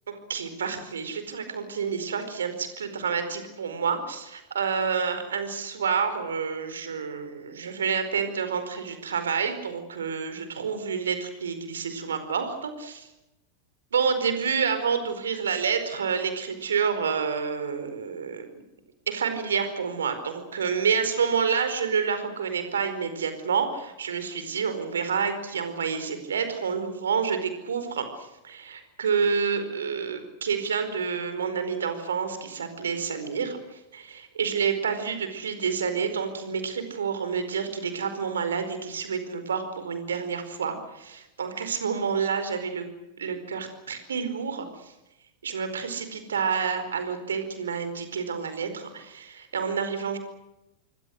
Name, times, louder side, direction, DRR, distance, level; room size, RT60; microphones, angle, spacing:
voice 1, 0.1-13.1 13.9-18.5 19.1-42.9 43.2-44.9 45.4-50.2, right 6 dB, 65° right, 9 dB, 4.7 m, -29 dB
27.5 x 23.0 x 6.5 m, 0.93 s
figure-of-eight pair, 90°, 0 cm